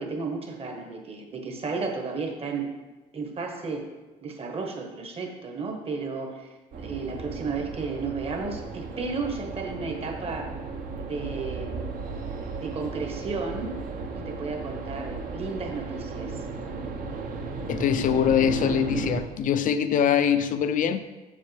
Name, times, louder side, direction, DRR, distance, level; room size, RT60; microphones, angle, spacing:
voice 1, 0.0-2.7 3.1-3.9 4.2-10.5 11.0-11.9 12.4-13.8 14.1-16.4, right 4 dB, 35° right, 3 dB, 1.2 m, -33 dB
sound 1, 6.7-19.2, right 4 dB, 55° right, 0.9 m, -35 dB
voice 2, 17.7-21.1, left 8 dB, 50° left, 11 dB, 0.5 m, -23 dB
7.4 x 6.6 x 3.3 m, 1.2 s
cardioid pair, 110°, 17 cm